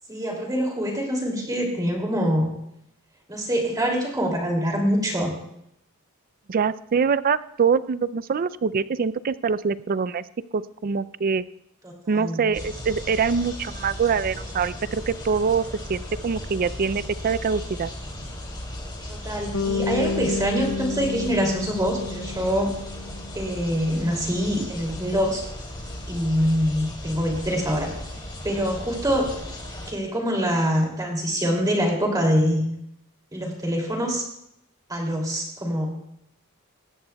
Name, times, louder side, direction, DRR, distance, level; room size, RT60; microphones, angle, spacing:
voice 1, 0.1-2.5 3.3-5.3 11.8-12.4 19.1-22.7 23.3-25.4 26.1-27.9 28.4-29.3 29.9-32.6 33.3-34.2 34.9-35.9, equal, 15° right, 0 dB, 2.7 m, -24 dB
voice 2, 6.5-10.2 10.5-11.4 12.1-17.9, right 5 dB, 40° right, 17 dB, 0.4 m, -24 dB
sound 1, 12.5-29.9, left 1 dB, 20° left, 2.7 m, -36 dB
Bass guitar, 19.5-23.7, left 4 dB, 80° left, 0.8 m, -30 dB
19.5 x 15.5 x 2.3 m, 0.77 s
head